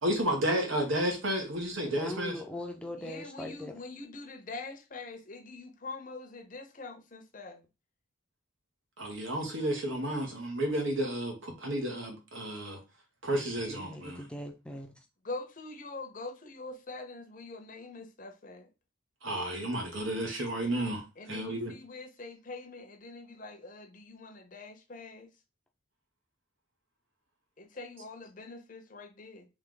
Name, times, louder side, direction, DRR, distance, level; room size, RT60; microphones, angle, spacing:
voice 1, 0.0-2.4 9.0-12.8 13.2-14.3 19.2-21.7, right 1 dB, 80° right, 1.4 m, -32 dB
voice 2, 1.8-3.7 13.7-14.9, left 1 dB, 5° left, 0.5 m, -40 dB
voice 3, 3.0-7.6 15.2-18.7 21.2-25.3 27.6-29.5, left 3 dB, 40° left, 0.7 m, -44 dB
3.4 x 3.3 x 3.8 m
head